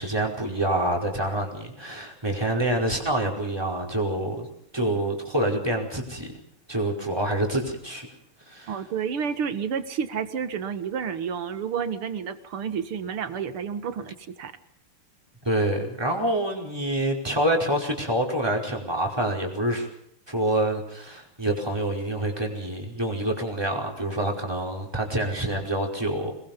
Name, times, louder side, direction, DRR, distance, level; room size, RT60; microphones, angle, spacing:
voice 1, 0.0-4.5 4.7-6.3 6.7-8.1 8.4-8.8 15.4-19.9 20.3-26.3, right 1 dB, 10° right, 0 dB, 5.1 m, -27 dB
voice 2, 8.7-14.5, right 7 dB, 75° right, 11 dB, 2.5 m, -30 dB
27.5 x 21.5 x 5.4 m, 0.69 s
omnidirectional pair, 2.4 m